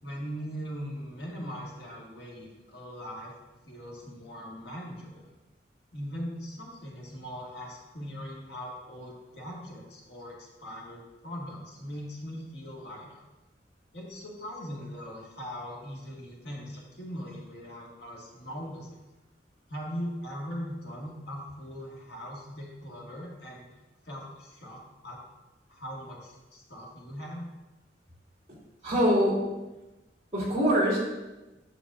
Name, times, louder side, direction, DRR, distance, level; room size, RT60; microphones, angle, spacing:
voice 1, 0.0-3.3 3.6-5.2 5.9-13.2 13.9-19.0 19.7-23.7 24.0-25.2 25.7-27.5, equal, 70° left, -3 dB, 1.7 m, -40 dB
voice 2, 28.8-29.4 30.3-31.0, equal, 35° right, -7 dB, 2.8 m, -23 dB
10.0 x 6.8 x 2.5 m, 1.1 s
head